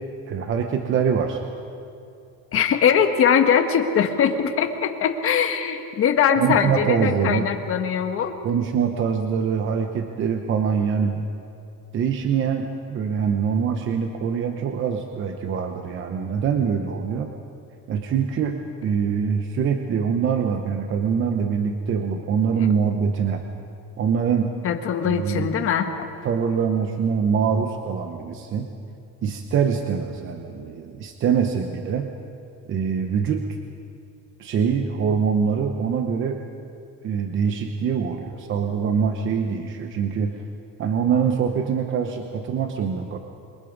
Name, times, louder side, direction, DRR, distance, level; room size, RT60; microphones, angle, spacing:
voice 1, 0.3-1.4 6.4-7.5 8.4-11.2 11.9-17.3 17.9-23.4 24.0-24.5 25.0-25.5 26.2-28.7 29.2-32.1 32.7-33.5 34.4-36.4 37.0-40.4 40.8-43.2, right 6 dB, 35° right, 5 dB, 1.0 m, -24 dB
voice 2, 2.5-8.4 24.6-25.9, left 7 dB, 40° left, 5 dB, 1.5 m, -21 dB
27.5 x 22.5 x 5.3 m, 2.6 s
cardioid pair, 175°, 35 cm